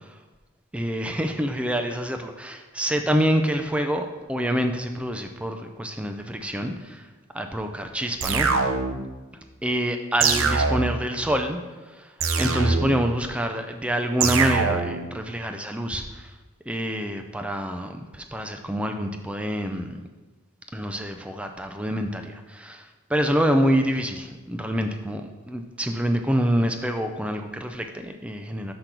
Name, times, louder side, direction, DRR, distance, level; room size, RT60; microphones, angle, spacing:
voice 1, 0.7-7.0 7.3-8.5 9.6-11.6 12.0-12.1 12.4-16.3 16.7-20.0 20.7-22.8 23.1-28.7, equal, 5° right, 6 dB, 0.4 m, -26 dB
sound 1, 8.2-9.1 10.2-11.1 12.2-13.1 14.2-15.1, right 4 dB, 70° right, 0.6 m, -23 dB
6.0 x 5.1 x 5.9 m, 1.2 s
head